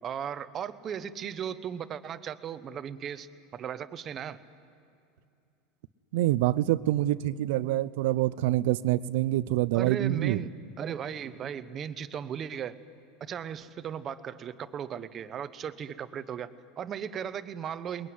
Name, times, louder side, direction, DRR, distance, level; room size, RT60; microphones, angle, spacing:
voice 1, 0.0-4.4 9.7-12.8 13.2-18.1, right 8 dB, 30° right, 13 dB, 0.9 m, -37 dB
voice 2, 6.1-10.4, right 15 dB, 75° right, 17 dB, 0.7 m, -26 dB
29.0 x 21.5 x 9.6 m, 2.6 s
supercardioid pair, 155°, 0 cm